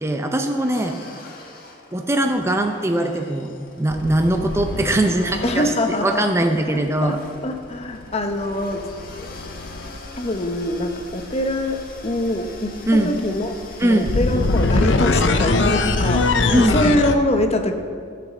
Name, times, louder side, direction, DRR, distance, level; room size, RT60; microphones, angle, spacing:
voice 1, 0.0-1.0 1.9-7.2 12.9-13.1 13.8-14.1 16.5-16.8, right 1 dB, 15° right, 4 dB, 0.5 m, -21 dB
sound 1, 0.5-16.9, left 2 dB, 50° left, 1.6 m, -42 dB
sound 2, 2.4-2.7 3.9-6.0 7.8-17.2, left 3 dB, 75° left, 0.7 m, -23 dB
voice 2, 5.4-6.2 7.0-7.2 7.4-8.8 10.2-13.5 13.8-16.4 16.7-17.8, left 1 dB, 35° left, 6 dB, 0.9 m, -23 dB
13.5 x 6.0 x 7.3 m, 2.2 s
head